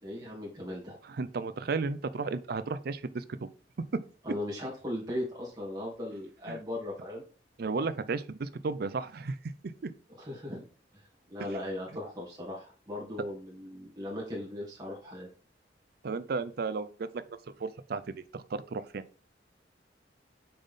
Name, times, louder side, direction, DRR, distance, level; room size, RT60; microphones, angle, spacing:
voice 1, 0.0-1.0 4.2-7.2 10.2-10.6 11.3-15.3, left 1 dB, 20° right, -5 dB, 2.6 m, -38 dB
voice 2, 1.0-3.5 3.9-4.0 6.5-6.6 7.6-9.5 9.8-9.9 16.0-17.2 17.6-18.0 18.3-19.0, right 4 dB, 60° right, 14 dB, 0.5 m, -34 dB
6.7 x 4.1 x 3.6 m, 0.40 s
head